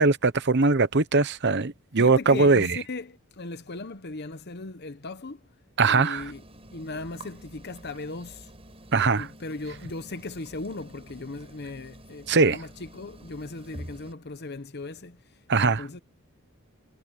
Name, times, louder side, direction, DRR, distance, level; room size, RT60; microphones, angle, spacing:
voice 1, 0.0-2.8 5.8-6.2 8.9-9.3 12.3-12.6 15.5-15.9, right 3 dB, 55° right, 1.1 m, -21 dB
voice 2, 2.0-5.4 5.9-6.4 6.7-8.5 9.2-15.2 15.6-16.0, left 3 dB, 50° left, 0.9 m, -37 dB
sound 1, 6.2-14.1, right 1 dB, 25° right, 7.5 m, -48 dB
head